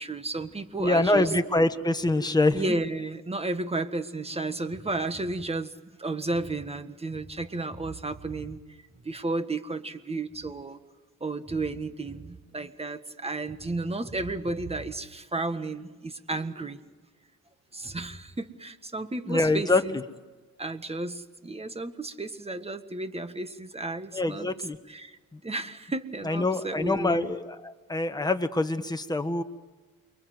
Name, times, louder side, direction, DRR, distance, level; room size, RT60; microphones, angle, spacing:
voice 1, 0.0-1.3 2.5-8.6 9.0-10.8 11.2-16.8 17.7-20.0 20.6-24.5 24.9-25.2 25.4-27.3, right 2 dB, 15° right, 10 dB, 1.6 m, -33 dB
voice 2, 0.8-2.8 19.3-20.0 24.1-24.8 25.3-25.4 26.2-29.4, left 2 dB, 10° left, 7 dB, 1.4 m, -25 dB
28.5 x 23.0 x 8.0 m, 1.3 s
cardioid pair, 105°, 35 cm